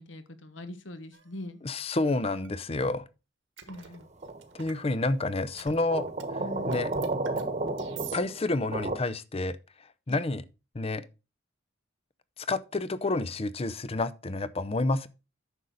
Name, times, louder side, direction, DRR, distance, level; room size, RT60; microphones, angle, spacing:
voice 1, 0.0-1.6 3.7-4.1 6.4-6.9 10.1-10.2, left 1 dB, 75° left, 1.3 m, -42 dB
sound 1, 1.1-1.2 2.1-2.5 3.6-4.8 5.4-6.2 6.5-8.2, right 8 dB, 75° right, 1.5 m, -45 dB
voice 2, 1.6-3.0 4.5-6.1 6.7-6.9 8.1-9.6 10.1-10.4 10.7-11.1 12.4-15.1, left 2 dB, 30° left, 0.6 m, -29 dB
sound 2, 4.2-4.6 5.9-9.0, right 2 dB, 35° right, 1.2 m, -32 dB
9.8 x 6.4 x 4.0 m
head